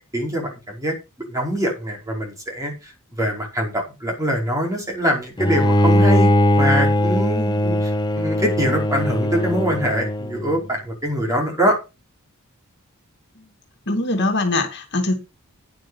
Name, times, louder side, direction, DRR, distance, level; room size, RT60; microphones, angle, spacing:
voice 1, 0.1-0.9 1.3-6.3 6.6-7.9 8.2-11.8, equal, 15° right, 5.2 m, -24 dB
Bowed string instrument, 5.4-10.6, left 1 dB, 20° left, 0.9 m, -19 dB
voice 2, 13.9-15.1, left 2 dB, 55° left, 2.4 m, -22 dB
9.9 x 9.1 x 5.6 m
head